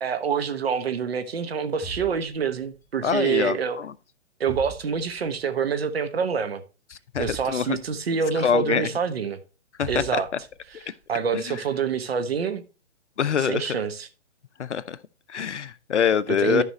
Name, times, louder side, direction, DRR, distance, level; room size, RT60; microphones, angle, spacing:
voice 1, 0.0-3.8 4.4-6.6 7.2-9.4 9.9-10.3 10.7-12.6 13.4-14.1 16.3-16.6, right 6 dB, 55° right, 1.2 m, -26 dB
sound 1, 1.8-2.9 4.5-5.4 7.1-8.2 9.8-10.8, right 2 dB, 10° left, 1.4 m, -41 dB
voice 2, 3.0-3.9 7.1-7.8 8.4-8.9 9.8-10.2 11.3-11.6 13.2-13.7 14.6-15.0 15.3-16.6, left 7 dB, 70° left, 0.7 m, -25 dB
13.0 x 5.1 x 3.1 m
figure-of-eight pair, 140°, 36 cm